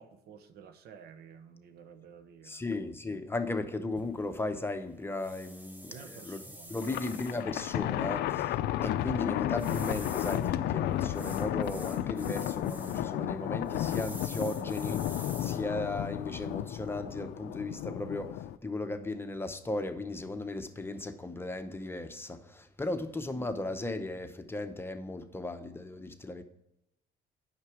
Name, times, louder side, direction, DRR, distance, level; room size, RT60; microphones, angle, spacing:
voice 1, 0.0-2.7 5.9-7.0, right 7 dB, 70° right, 0.9 m, -52 dB
voice 2, 2.4-6.4 6.7-26.4, left 2 dB, 15° left, 0.7 m, -36 dB
sound 1, 4.0-17.0, equal, 10° right, 1.2 m, -51 dB
Thunder, 6.8-18.6, left 12 dB, 75° left, 0.4 m, -33 dB
8.9 x 5.9 x 4.8 m
cardioid pair, 110°, 17 cm